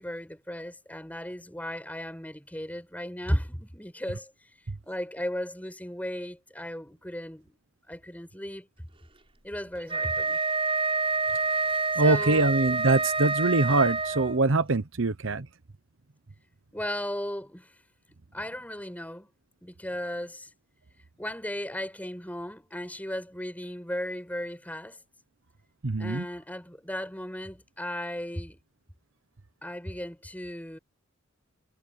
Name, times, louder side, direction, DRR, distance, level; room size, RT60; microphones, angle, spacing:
voice 1, 0.0-4.3 4.9-7.6 7.9-8.7 9.4-10.4 12.0-12.4 16.7-17.7 18.3-19.3 19.6-20.5 21.2-25.0 26.0-28.6 29.6-30.8, equal, 10° left, 6.7 m, -35 dB
Wind instrument woodwind instrument, 9.8-14.5, right 3 dB, 25° right, 7.1 m, -27 dB
voice 2, 12.0-15.5 25.8-26.3, right 3 dB, 70° right, 1.0 m, -24 dB
head